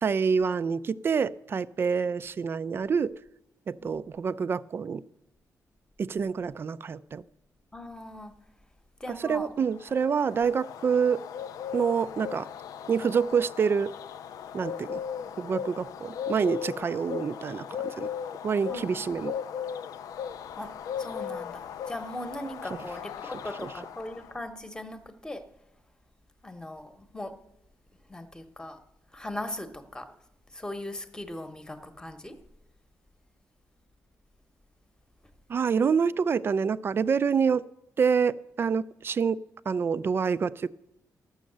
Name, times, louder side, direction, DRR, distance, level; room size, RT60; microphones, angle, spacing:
voice 1, 0.0-3.1 3.7-5.0 6.0-7.2 9.1-11.2 11.7-12.5 12.9-13.9 14.5-15.0 15.4-18.1 18.4-19.4 22.7-22.9 23.6-23.7 35.5-37.6 38.0-40.7, right 6 dB, 40° right, 16 dB, 0.4 m, -27 dB
voice 2, 7.7-8.3 9.0-9.5 15.2-15.3 18.7-18.9 20.6-20.7 21.0-21.6 21.9-25.4 26.4-27.3 28.1-28.8 29.1-30.1 30.5-32.4, left 1 dB, 10° left, 8 dB, 1.0 m, -39 dB
Bird, 9.7-24.4, left 8 dB, 85° left, 0.4 m, -38 dB
12.5 x 6.4 x 7.8 m, 0.85 s
cardioid pair, 115°, 6 cm